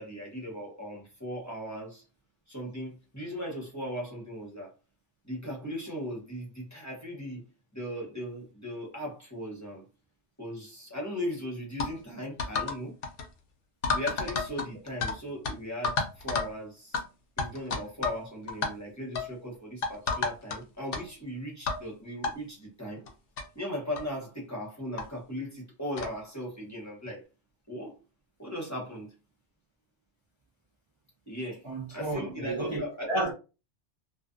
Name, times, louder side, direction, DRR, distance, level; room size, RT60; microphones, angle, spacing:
voice 1, 0.0-2.0 2.5-4.7 5.2-7.4 7.7-9.8 10.4-12.9 13.9-17.0 17.4-23.1 23.5-27.2 27.7-28.0 28.4-29.1 31.3-31.6 31.9-33.2, equal, 15° left, 0.8 m, -38 dB
sound 1, 11.8-11.9 12.4-12.8 13.0-13.3 13.8-15.2 15.4-15.5 15.8-16.5 16.9-17.0 17.4-18.2 18.5-18.7 19.2-19.3 19.8-20.6 20.9-21.0 21.7-21.8 22.2-22.3 23.1-23.2 23.4-23.5 24.0-24.1 25.0-25.1 26.0-26.2, left 4 dB, 60° left, 0.8 m, -30 dB
voice 2, 31.6-33.3, right 2 dB, 35° right, 0.5 m, -32 dB
2.4 x 2.4 x 2.4 m
omnidirectional pair, 1.2 m